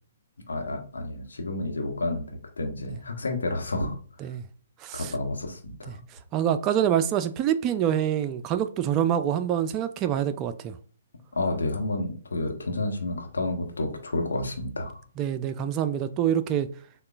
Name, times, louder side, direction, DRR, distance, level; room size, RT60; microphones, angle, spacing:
voice 1, 0.5-2.3 2.6-4.0 4.9-6.0 11.3-15.0, left 2 dB, 75° left, 1.0 m, -30 dB
voice 2, 4.8-5.1 6.3-10.8 15.2-16.7, right 10 dB, 25° right, 0.3 m, -26 dB
6.3 x 2.3 x 2.4 m
figure-of-eight pair, 125°, 0 cm